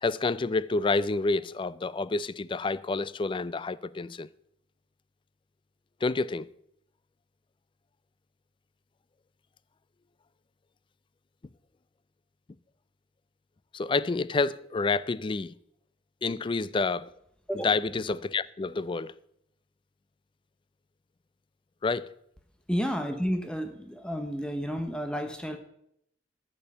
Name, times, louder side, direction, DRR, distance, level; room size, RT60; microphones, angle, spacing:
voice 1, 0.0-4.3 6.0-6.5 13.7-15.5 16.2-17.1 17.6-19.1 21.8-22.1, left 3 dB, 25° left, 0.4 m, -28 dB
voice 2, 22.7-25.6, equal, 5° left, 0.8 m, -31 dB
14.0 x 5.4 x 7.0 m
head